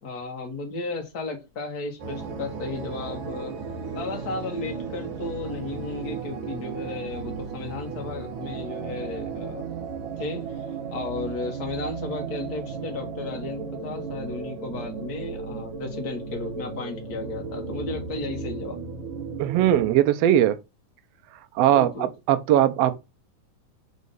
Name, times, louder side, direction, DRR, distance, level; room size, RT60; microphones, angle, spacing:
voice 1, 0.0-3.5 3.9-9.7 10.2-10.6 10.9-18.8 21.7-22.1, left 3 dB, 45° left, 1.2 m, -34 dB
sound 1, 2.0-19.9, right 5 dB, 55° right, 1.6 m, -35 dB
voice 2, 19.4-20.6 21.5-21.9 22.3-23.0, right 12 dB, 80° right, 1.4 m, -19 dB
4.7 x 4.2 x 5.4 m
omnidirectional pair, 3.7 m